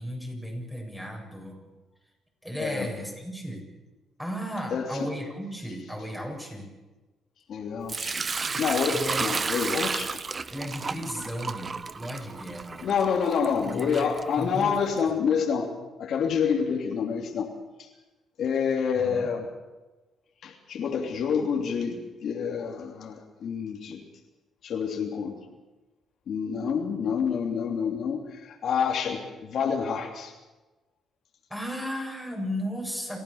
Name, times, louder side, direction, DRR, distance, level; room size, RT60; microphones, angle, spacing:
voice 1, 0.0-1.6 2.4-3.6 4.2-6.7 8.9-9.3 10.5-12.9 13.7-14.8 15.1-15.3 19.0-19.4 31.5-33.2, equal, 5° right, 0 dB, 7.8 m, -35 dB
voice 2, 7.5-8.2 8.6-10.2 12.8-15.7 16.0-17.5 17.8-17.9 18.4-19.4 20.4-24.0 24.6-25.4 26.3-30.3, left 6 dB, 65° left, 2 dB, 3.1 m, -28 dB
Sink (filling or washing) / Liquid, 7.9-14.8, right 4 dB, 35° right, 0.8 m, -33 dB
27.5 x 15.5 x 7.3 m, 1.2 s
cardioid pair, 90°, 0 cm